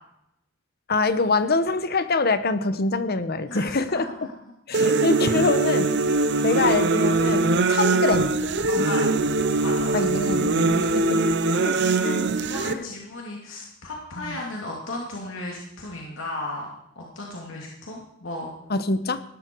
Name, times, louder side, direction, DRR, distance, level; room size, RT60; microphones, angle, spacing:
voice 1, 0.9-4.1 4.7-5.9 6.4-8.3 9.9-11.2 11.6-12.3 12.7-12.9 14.2-14.4 18.7-19.2, left 3 dB, 55° left, 12 dB, 1.1 m, -25 dB
voice 2, 3.5-4.0 8.7-9.0 9.6-9.9 11.6-11.9 12.4-16.7 17.0-18.5, left 2 dB, 75° left, -2 dB, 2.8 m, -35 dB
sound 1, 4.7-12.7, right 3 dB, 60° right, 0.9 m, -22 dB
18.0 x 13.0 x 4.7 m, 0.80 s
head